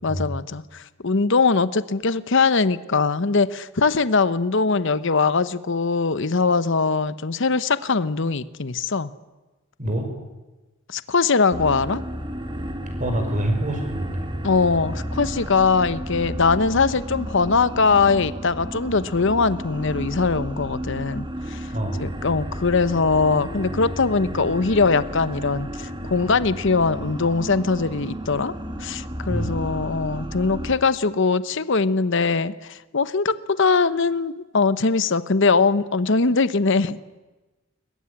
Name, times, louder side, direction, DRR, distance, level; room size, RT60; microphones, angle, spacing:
voice 1, 0.0-9.1 10.9-12.0 14.4-21.7 22.0-28.5 28.8-37.0, left 4 dB, 60° left, 14 dB, 0.9 m, -21 dB
sound 1, 11.5-30.7, equal, 25° right, 2.3 m, -32 dB
voice 2, 13.0-14.3 21.7-22.0 29.3-29.6, right 1 dB, 40° right, 5 dB, 5.8 m, -26 dB
21.5 x 21.5 x 9.9 m, 1.1 s
head